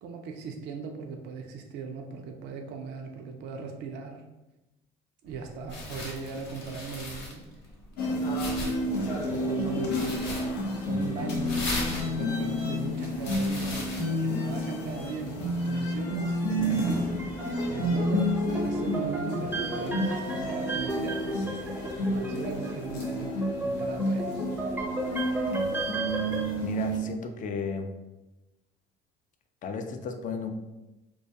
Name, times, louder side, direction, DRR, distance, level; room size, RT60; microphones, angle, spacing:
voice 1, 0.0-4.2 5.2-7.4 8.1-8.7 9.1-10.3 10.8-11.7 12.0-13.8 14.2-17.1 17.6-21.5 21.8-24.5, right 5 dB, 55° right, 3 dB, 0.4 m, -39 dB
sound 1, 5.3-14.0, left 1 dB, 65° left, 0.8 m, -39 dB
sound 2, 8.0-27.0, equal, 90° left, 0.6 m, -30 dB
sound 3, 16.9-26.4, right 1 dB, 10° right, 0.5 m, -34 dB
voice 2, 26.6-27.9 29.6-30.5, left 5 dB, 40° left, 6 dB, 0.4 m, -34 dB
2.2 x 2.2 x 2.7 m, 1.0 s
hypercardioid pair, 70°, 20 cm